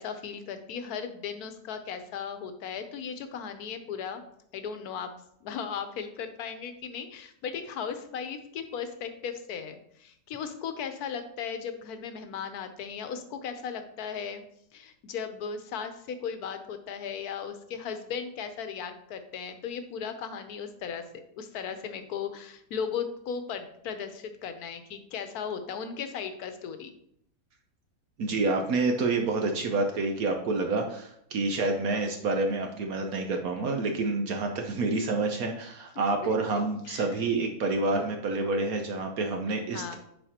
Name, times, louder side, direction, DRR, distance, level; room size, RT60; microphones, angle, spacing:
voice 1, 0.0-4.2 4.5-5.1 5.4-14.4 14.7-21.1 21.3-26.9 36.0-37.1 39.7-40.0, left 7 dB, 70° left, 8 dB, 1.2 m, -37 dB
voice 2, 28.2-40.0, right 3 dB, 65° right, 3 dB, 1.1 m, -28 dB
10.0 x 4.4 x 2.9 m, 0.73 s
omnidirectional pair, 1.8 m